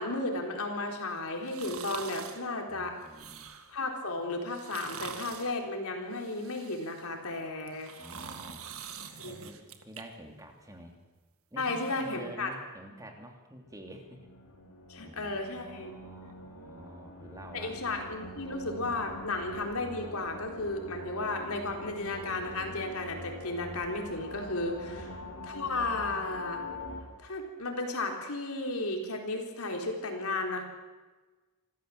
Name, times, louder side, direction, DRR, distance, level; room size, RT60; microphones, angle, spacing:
voice 1, 0.0-3.0 3.7-7.9 9.2-9.4 11.6-12.5 14.9-15.9 17.5-25.1 25.4-26.6 27.2-30.6, left 2 dB, 75° left, 3 dB, 3.9 m, -34 dB
sound 1, 1.4-2.4 3.0-3.8 4.5-5.5 6.1-7.1 7.6-10.0 10.4-10.5, right 6 dB, 70° right, 2.0 m, -44 dB
voice 2, 2.7-3.5 7.4-8.7 9.2-11.0 11.5-14.3 15.0-17.7 18.4-18.5 24.9-25.1, right 1 dB, 15° right, 3 dB, 2.7 m, -49 dB
sound 2, 13.7-27.0, left 1 dB, 90° left, 5.1 m, -44 dB
26.0 x 15.0 x 7.7 m, 1.3 s
head